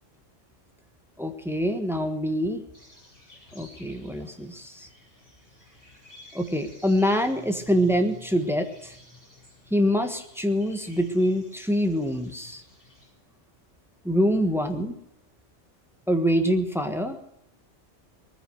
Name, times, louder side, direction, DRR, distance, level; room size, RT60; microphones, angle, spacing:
voice 1, 1.2-2.6 3.5-4.9 6.3-8.9 9.7-12.6 14.0-15.0 16.1-17.2, equal, ahead, 6 dB, 1.3 m, -25 dB
sound 1, 2.7-13.1, left 1 dB, 15° left, 7.7 m, -54 dB
20.0 x 10.0 x 6.5 m, 0.76 s
omnidirectional pair, 1.3 m